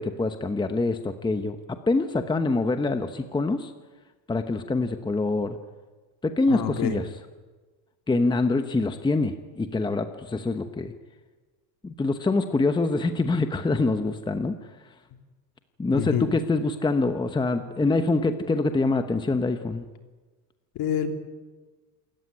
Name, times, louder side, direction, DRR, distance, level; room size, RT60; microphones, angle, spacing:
voice 1, 0.0-3.7 4.3-5.6 6.2-7.0 8.1-10.9 11.8-14.5 15.8-19.8, left 3 dB, 10° left, 8 dB, 1.0 m, -25 dB
voice 2, 6.5-7.0 15.9-16.3 20.7-21.1, left 9 dB, 55° left, 5 dB, 3.2 m, -27 dB
27.5 x 14.5 x 9.7 m, 1.3 s
cardioid pair, 140°, 45 cm